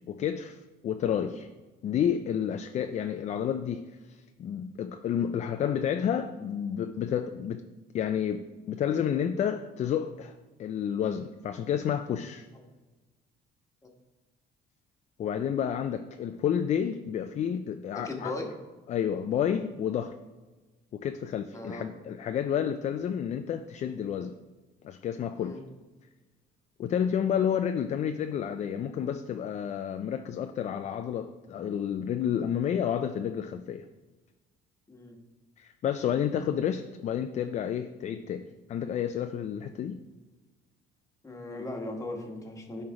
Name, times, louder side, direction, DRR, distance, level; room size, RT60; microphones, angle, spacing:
voice 1, 0.1-0.6 0.8-1.5 1.8-7.6 7.9-10.3 10.6-12.5 15.2-18.3 18.9-20.1 20.9-24.3 24.8-25.6 26.8-33.9 35.6-40.0, left 8 dB, 45° left, 0.4 m, -30 dB
voice 2, 17.9-18.5 21.5-21.8 25.4-25.6 34.9-35.2 41.2-42.8, left 2 dB, 20° left, 1.3 m, -37 dB
9.6 x 3.3 x 4.8 m
cardioid pair, 110°, 17 cm